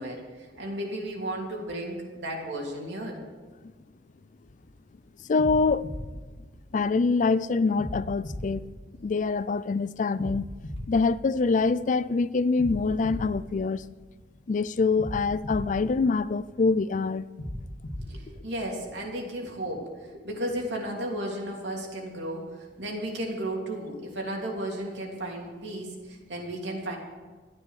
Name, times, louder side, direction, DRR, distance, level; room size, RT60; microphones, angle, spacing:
voice 1, 0.0-3.2 18.1-27.0, right 1 dB, 75° right, 2.9 m, -34 dB
sound 1, 4.5-4.8 5.4-7.2 7.8-9.6 10.2-12.0 12.6-14.4 15.0-16.8 17.4-19.2, left 1 dB, 85° left, 2.1 m, -39 dB
voice 2, 5.3-5.9 6.7-8.7 9.0-10.5 10.9-13.8 14.5-17.2, left 4 dB, 45° left, 0.4 m, -25 dB
13.0 x 10.0 x 6.4 m
head